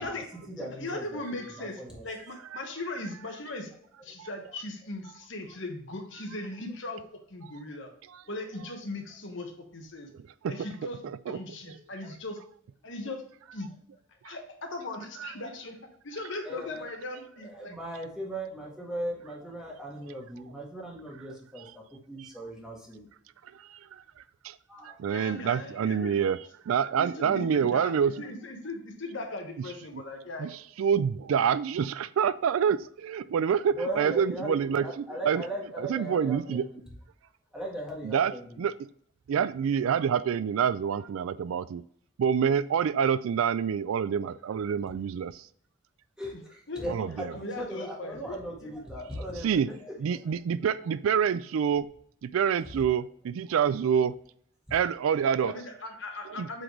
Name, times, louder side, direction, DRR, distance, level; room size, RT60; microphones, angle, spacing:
voice 1, 0.0-2.0 4.4-4.5 16.4-16.9 17.4-23.1 24.7-25.0 33.7-36.8 37.5-38.6 46.2-50.4 51.1-51.2, equal, 5° right, 1.6 m, -38 dB
voice 2, 0.6-3.7 4.0-7.0 7.3-7.9 8.3-10.1 10.5-12.4 12.8-13.2 13.5-13.7 14.2-15.8 16.0-17.7 25.0-26.2 27.0-27.9 28.2-30.5 46.3-46.4 46.7-46.9 47.3-48.7 55.4-56.6, left 2 dB, 60° left, 1.2 m, -38 dB
voice 3, 23.7-24.0 24.4-24.5 24.8-28.2 30.4-30.5 30.8-35.4 35.9-36.6 38.0-38.3 38.6-38.7 39.3-41.8 42.2-45.4 46.9-47.3 49.4-49.7 50.0-51.9 52.2-54.2 54.7-55.5 56.4-56.5, right 7 dB, 80° right, 0.3 m, -27 dB
7.8 x 3.9 x 3.1 m
head